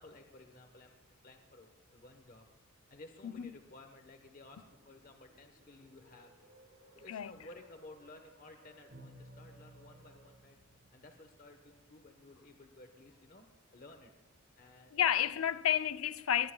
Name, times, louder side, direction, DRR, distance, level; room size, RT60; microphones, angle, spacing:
voice 1, 0.0-2.4 2.9-6.5 6.9-10.6 10.9-14.1 14.6-15.3, left 2 dB, 40° left, 1.1 m, -56 dB
sound 1, 4.4-10.3, right 1 dB, 70° right, 2.5 m, -65 dB
Bowed string instrument, 8.9-11.7, right 1 dB, 50° right, 5.5 m, -57 dB
voice 2, 14.9-16.5, left 10 dB, 75° left, 0.5 m, -31 dB
21.5 x 20.5 x 2.3 m
head